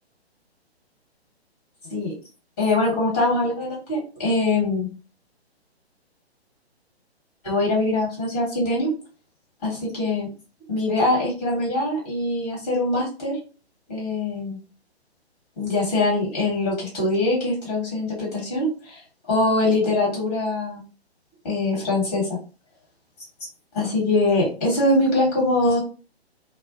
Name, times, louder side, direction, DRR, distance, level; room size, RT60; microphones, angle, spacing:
voice 1, 2.6-4.9 7.4-8.9 9.6-10.3 10.7-13.4 13.9-14.6 15.6-19.0 19.3-20.9 21.4-22.4 23.7-25.8, left 2 dB, 15° left, -4 dB, 1.1 m, -23 dB
2.3 x 2.1 x 2.5 m, 0.35 s
figure-of-eight pair, 130°, 33 cm